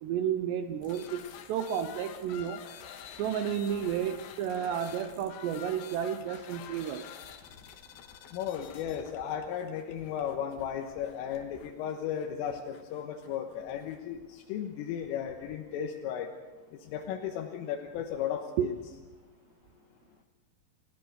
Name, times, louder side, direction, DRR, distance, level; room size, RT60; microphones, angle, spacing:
voice 1, 0.0-1.2 1.5-2.6 3.2-7.1 18.6-18.7, right 9 dB, 80° right, 8 dB, 2.5 m, -31 dB
sound 1, 0.8-14.0, left 9 dB, 70° left, 3.2 m, -49 dB
voice 2, 8.3-16.3 16.9-18.7, left 9 dB, 85° left, 2 dB, 3.7 m, -35 dB
28.5 x 16.5 x 6.4 m, 1.3 s
omnidirectional pair, 5.8 m